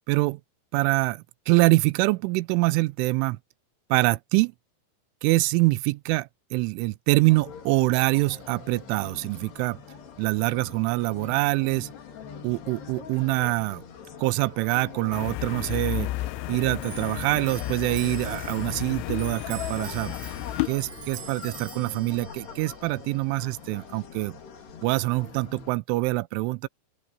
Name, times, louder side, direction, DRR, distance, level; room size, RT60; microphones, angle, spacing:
voice 1, 0.1-0.4 0.7-3.4 3.9-4.5 5.2-9.8 10.2-11.9 12.4-13.8 14.2-16.1 16.5-20.2 20.7-24.4 24.8-26.7, right 22 dB, 85° right, 3.0 m, -25 dB
sound 1, 7.3-25.7, left 7 dB, 55° left, 5.1 m, -43 dB
sound 2, 15.1-20.7, left 18 dB, 80° left, 3.1 m, -32 dB
Clock, 15.7-25.6, right 6 dB, 45° right, 6.2 m, -46 dB
open air
omnidirectional pair, 5.8 m